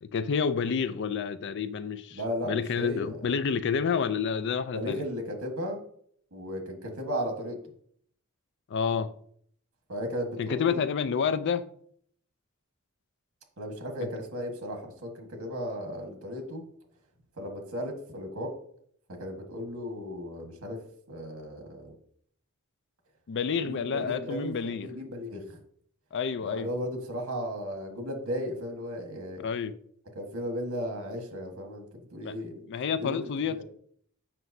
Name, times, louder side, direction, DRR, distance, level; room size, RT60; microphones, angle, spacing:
voice 1, 0.0-2.2 2.4-5.0 8.7-9.1 10.4-11.6 14.0-14.1 23.3-24.9 26.1-26.7 29.4-29.7 32.2-32.3 32.7-33.6, left 6 dB, 55° left, 0.4 m, -29 dB
voice 2, 2.1-3.3 4.7-5.8 6.3-7.6 9.9-10.8 13.6-16.6 17.4-18.5 19.2-20.8 21.1-21.9 23.6-25.6 26.4-29.4 30.1-33.6, equal, 75° right, 1.5 m, -35 dB
7.6 x 5.9 x 2.7 m
head